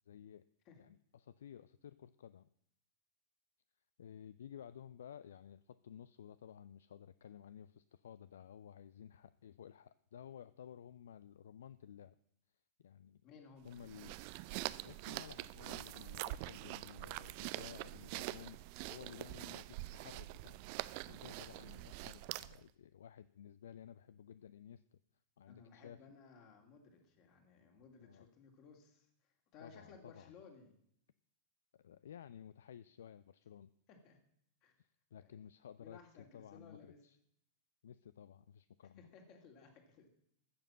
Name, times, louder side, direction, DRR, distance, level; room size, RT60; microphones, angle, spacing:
voice 1, 0.1-0.4 0.8-2.5 4.0-12.2 12.8-13.2 13.6-14.1 14.7-25.0 25.4-26.0 28.0-28.3 29.6-30.3 31.7-33.7 34.8-37.2 37.8-39.1, left 9 dB, 65° left, 15 dB, 0.4 m, -55 dB
voice 2, 13.2-13.7 15.8-16.3 25.5-30.8 33.9-34.2 34.6-34.7 35.2-35.4 35.8-37.0 38.8-40.1, left 5 dB, 40° left, 3 dB, 2.8 m, -60 dB
sound 1, 13.7-22.7, right 19 dB, 45° right, 0.4 m, -45 dB
14.0 x 7.1 x 7.4 m, 0.69 s
figure-of-eight pair, 90°, 0 cm